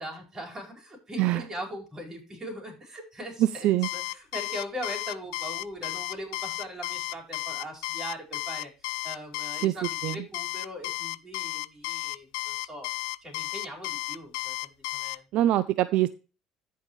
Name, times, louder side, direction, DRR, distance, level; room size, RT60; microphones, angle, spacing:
voice 1, 0.0-12.9 13.2-15.2, equal, 25° right, 0 dB, 4.9 m, -40 dB
Alarm, 3.8-15.2, left 23 dB, 90° left, 0.3 m, -33 dB
voice 2, 15.3-16.1, right 14 dB, 65° right, 14 dB, 0.4 m, -23 dB
14.0 x 5.5 x 3.2 m, 0.33 s
supercardioid pair, 95°, 2 cm